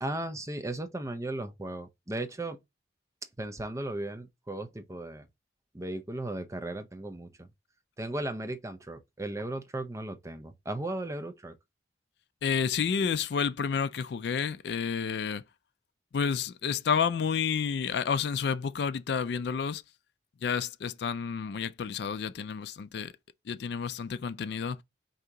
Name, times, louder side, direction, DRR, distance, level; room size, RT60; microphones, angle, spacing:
voice 1, 0.0-2.6 3.4-5.3 5.7-7.5 8.0-11.5, right 1 dB, 15° right, 0.5 m, -36 dB
voice 2, 12.4-15.4 16.1-19.8 20.4-23.1 23.5-24.8, left 6 dB, 60° left, 0.3 m, -30 dB
4.6 x 2.8 x 3.7 m
head